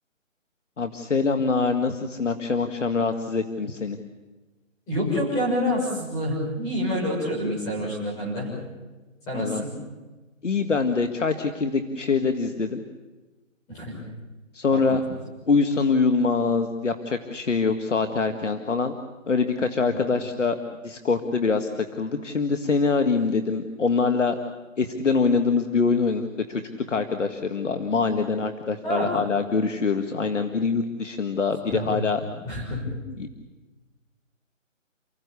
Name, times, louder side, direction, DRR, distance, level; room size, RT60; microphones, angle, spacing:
voice 1, 0.8-4.0 9.3-9.6 10.4-12.8 14.5-15.0 15.5-18.9 19.3-20.6 20.8-24.4 24.8-26.6 26.9-32.2 33.1-33.3, left 4 dB, 65° left, 6 dB, 2.0 m, -24 dB
voice 2, 4.9-8.5 9.3-9.7 13.7-14.0 14.7-14.8 19.9-20.0 28.8-29.2 31.7-31.9 32.4-32.8, equal, 10° left, -4 dB, 6.5 m, -27 dB
29.5 x 16.0 x 8.4 m, 1.2 s
hypercardioid pair, 175°, 39 cm